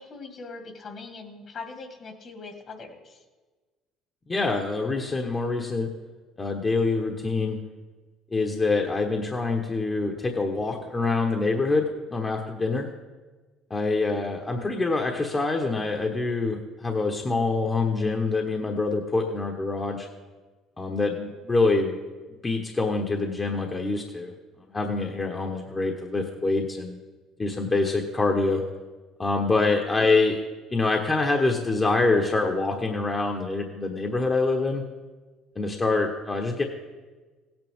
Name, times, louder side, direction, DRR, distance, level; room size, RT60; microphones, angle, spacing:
voice 1, 0.0-3.2 29.9-30.1, left 4 dB, 50° left, 4 dB, 2.1 m, -41 dB
voice 2, 4.3-5.9 6.4-7.6 8.3-11.8 12.1-12.9 13.7-20.1 20.8-21.9 22.4-24.3 24.7-27.0 27.4-28.6 29.2-30.4 30.7-34.8 35.5-36.6, left 3 dB, 25° left, 1 dB, 1.2 m, -25 dB
16.5 x 9.0 x 3.6 m, 1.3 s
supercardioid pair, 85°, 0 cm